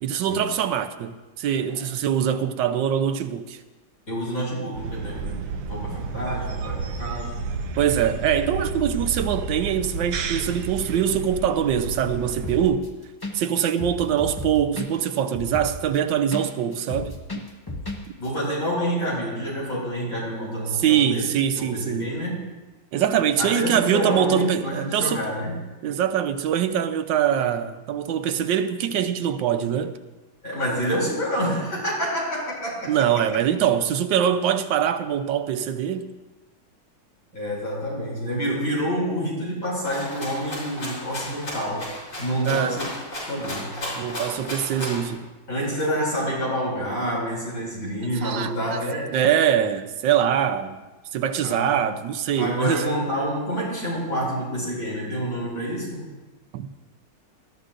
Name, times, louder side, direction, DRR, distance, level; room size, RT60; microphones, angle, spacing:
voice 1, 0.0-3.6 7.8-12.9 13.3-17.5 20.7-22.1 22.9-25.2 25.8-30.0 32.9-36.1 42.4-42.8 44.0-45.3 48.2-48.8 49.1-50.8 51.1-52.9 56.5-56.7, right 9 dB, 85° right, 1.4 m, -23 dB
voice 2, 4.1-7.5 18.2-21.3 21.5-22.5 23.4-25.5 30.4-33.2 37.3-41.9 42.2-42.9 43.3-43.8 45.5-49.1 51.4-51.7 52.4-56.1, equal, 50° left, 5.6 m, -28 dB
sound 1, 4.8-12.7, right 4 dB, 65° right, 1.2 m, -31 dB
sound 2, 12.4-12.9 13.2-13.3 13.6-16.4 16.7-18.0 18.2-18.3, left 2 dB, 15° left, 1.0 m, -33 dB
Rattle (instrument), 39.8-45.1, left 1 dB, 70° left, 5.9 m, -34 dB
20.0 x 12.5 x 2.5 m
omnidirectional pair, 1.9 m